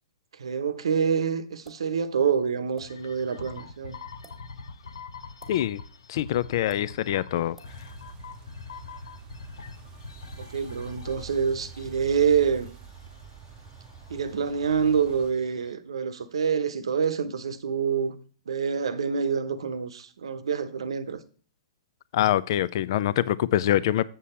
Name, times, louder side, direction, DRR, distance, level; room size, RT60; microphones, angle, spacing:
voice 1, 0.4-4.0 10.4-12.7 14.1-18.1 18.5-21.2, right 6 dB, 85° right, 0.8 m, -26 dB
sound 1, 1.6-1.9 2.7-2.9 4.1-4.4 5.4-5.6 6.7-6.8 7.6-7.7, right 2 dB, 5° right, 1.6 m, -51 dB
sound 2, 2.8-15.7, left 4 dB, 85° left, 0.7 m, -45 dB
voice 2, 5.5-5.8 6.1-7.6 22.1-24.1, left 12 dB, 55° left, 0.4 m, -24 dB
sound 3, 7.6-15.3, right 7 dB, 30° right, 0.7 m, -47 dB
7.3 x 6.8 x 4.3 m
hypercardioid pair, 130°, 3 cm